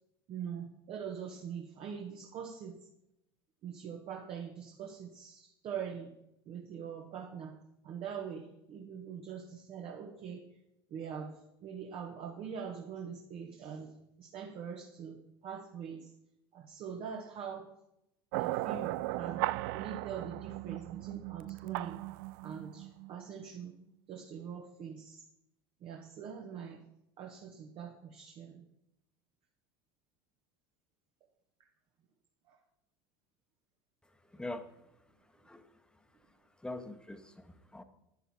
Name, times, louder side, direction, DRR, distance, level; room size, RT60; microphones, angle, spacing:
voice 1, 0.3-2.8 3.6-6.2 6.4-7.6 7.8-10.4 10.9-13.9 14.2-16.1 16.5-17.7 18.3-22.1 22.4-23.8 24.1-25.2 25.8-26.9 27.2-28.7 32.5-32.6, right 7 dB, 50° right, 2 dB, 1.5 m, -43 dB
sound 1, 18.3-23.6, right 19 dB, 65° right, 0.4 m, -37 dB
voice 2, 34.3-34.7 35.3-35.8 36.6-37.8, left 2 dB, 5° left, 7 dB, 1.3 m, -43 dB
10.5 x 10.5 x 4.4 m, 0.82 s
hypercardioid pair, 80°, 12 cm